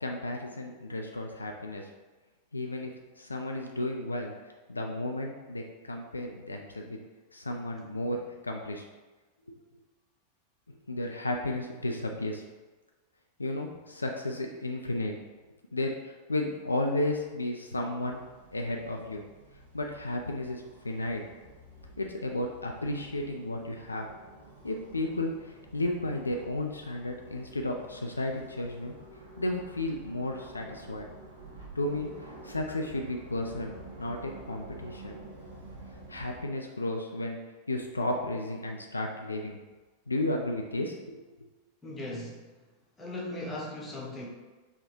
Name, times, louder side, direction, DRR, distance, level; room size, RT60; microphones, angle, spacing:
voice 1, 0.0-1.9 2.5-4.3 4.7-7.0 7.3-8.8 9.5-9.6 10.7-12.4 13.4-15.1 15.7-18.2 18.5-19.2 19.7-21.2 22.0-24.1 24.6-28.9 29.4-31.1 31.8-33.7 34.0-35.2 36.1-37.4 37.7-39.6 40.1-41.2, left 1 dB, 80° left, 2 dB, 0.3 m, -33 dB
sound 1, 18.0-36.4, right 2 dB, 75° right, 1.0 m, -49 dB
voice 2, 41.8-42.5 43.0-44.3, left 1 dB, 15° left, -3 dB, 0.9 m, -38 dB
3.5 x 2.2 x 4.4 m, 1.2 s
figure-of-eight pair, 90°, 0 cm